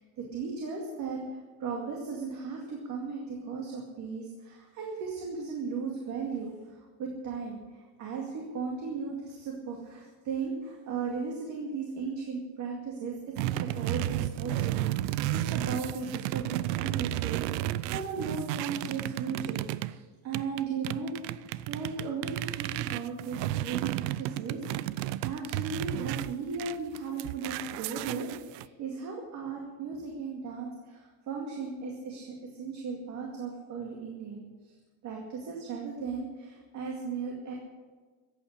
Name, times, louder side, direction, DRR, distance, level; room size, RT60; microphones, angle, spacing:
voice 1, 0.0-34.7 35.0-37.5, right 5 dB, 35° right, 0 dB, 2.2 m, -37 dB
sound 1, 13.4-19.9 20.3-28.6, right 15 dB, 75° right, 0.7 m, -33 dB
15.0 x 8.7 x 8.4 m, 1.4 s
cardioid pair, 175°, 49 cm